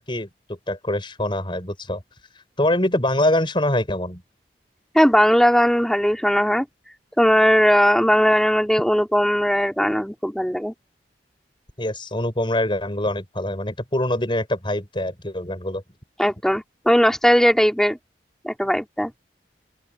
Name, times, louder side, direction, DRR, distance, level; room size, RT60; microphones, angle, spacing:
voice 1, 0.0-2.0 2.6-4.2 11.8-15.8, left 1 dB, 30° left, 6.1 m, -24 dB
voice 2, 4.9-6.6 7.2-10.7 16.2-18.0 18.4-19.1, equal, 5° left, 3.5 m, -18 dB
open air
head